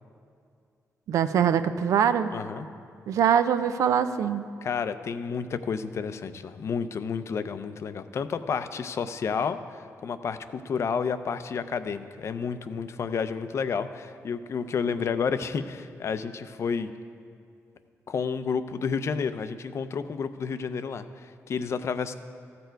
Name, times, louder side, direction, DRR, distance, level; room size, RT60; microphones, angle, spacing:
voice 1, 1.1-2.3 3.1-4.4, right 8 dB, 80° right, 11 dB, 0.5 m, -23 dB
voice 2, 2.3-2.7 4.6-16.9 18.1-22.2, left 6 dB, 55° left, 11 dB, 0.5 m, -30 dB
14.5 x 6.8 x 4.6 m, 2.4 s
cardioid pair, 90°, 5 cm